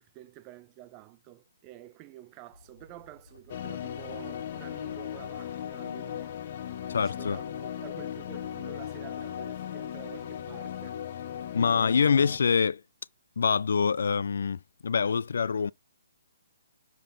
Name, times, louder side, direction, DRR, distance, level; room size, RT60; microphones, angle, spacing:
voice 1, 0.0-6.3 7.0-11.0, right 15 dB, 20° right, 0.5 m, -49 dB
Writing, 2.5-11.9, left 3 dB, 90° left, 2.0 m, -56 dB
sound 1, 3.5-12.4, left 10 dB, 40° left, 0.7 m, -37 dB
voice 2, 6.9-7.4 11.5-12.8 13.4-15.7, left 6 dB, 70° left, 0.3 m, -25 dB
6.8 x 3.8 x 3.9 m
hypercardioid pair, 160°, 0 cm